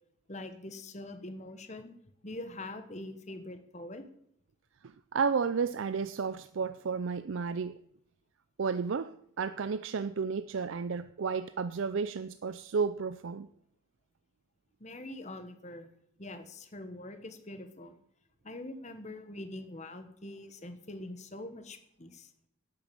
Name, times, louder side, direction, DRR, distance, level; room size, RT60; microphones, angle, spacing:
voice 1, 0.3-4.0 14.8-15.9 16.2-17.9 18.4-22.3, left 1 dB, 35° left, 8 dB, 1.3 m, -44 dB
voice 2, 4.8-7.8 8.6-13.5, right 5 dB, 60° right, 13 dB, 0.4 m, -32 dB
11.5 x 8.8 x 7.5 m, 0.72 s
head